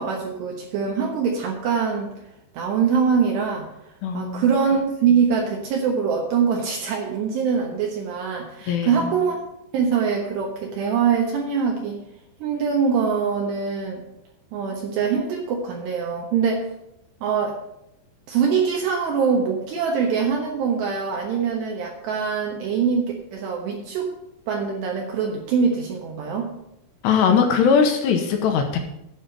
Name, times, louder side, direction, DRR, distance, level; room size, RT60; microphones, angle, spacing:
voice 1, 0.0-2.1 2.5-3.7 4.1-9.4 9.7-12.0 12.4-14.0 14.5-16.7 17.2-17.6 18.3-24.1 24.5-26.5, right 6 dB, 70° right, 0 dB, 3.0 m, -23 dB
voice 2, 4.0-4.5 8.7-9.1 27.0-28.8, left 6 dB, 75° left, 4 dB, 2.8 m, -20 dB
11.5 x 5.1 x 7.8 m, 0.83 s
omnidirectional pair, 5.6 m